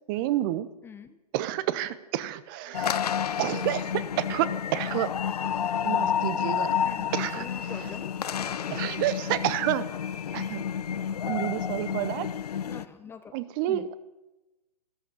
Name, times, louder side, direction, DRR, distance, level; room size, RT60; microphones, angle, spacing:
voice 1, 0.1-0.7 1.3-3.1 3.4-5.1 5.8-6.8 7.1-8.0 8.7-9.9 10.3-10.7 11.3-12.3 13.3-14.0, right 13 dB, 30° right, 15 dB, 0.7 m, -29 dB
voice 2, 0.8-1.2 6.8-7.1 7.4-8.1 12.6-13.3 13.7-13.9, left 6 dB, 10° left, 10 dB, 0.6 m, -43 dB
sound 1, 2.7-12.8, left 8 dB, 65° left, 0.7 m, -30 dB
13.5 x 13.0 x 7.0 m, 1.1 s
figure-of-eight pair, 125°, 21 cm